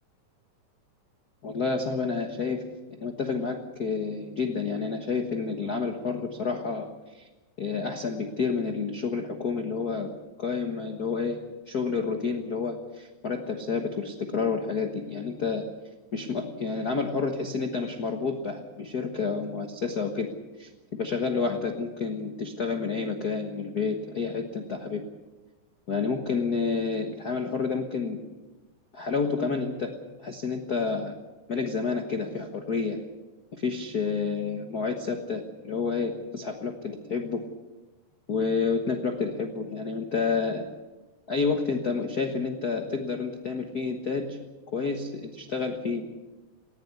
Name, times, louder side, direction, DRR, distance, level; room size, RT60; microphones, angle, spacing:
voice 1, 1.4-2.6 3.0-6.9 7.1-7.3 7.6-10.1 10.4-11.4 11.7-15.6 16.1-20.7 21.0-25.0 25.9-28.2 28.9-31.1 31.5-33.0 33.5-37.5 38.3-40.6 41.3-44.4 44.7-46.0, left 4 dB, 80° left, 5 dB, 0.8 m, -29 dB
19.5 x 16.0 x 9.6 m, 1.2 s
omnidirectional pair, 4.0 m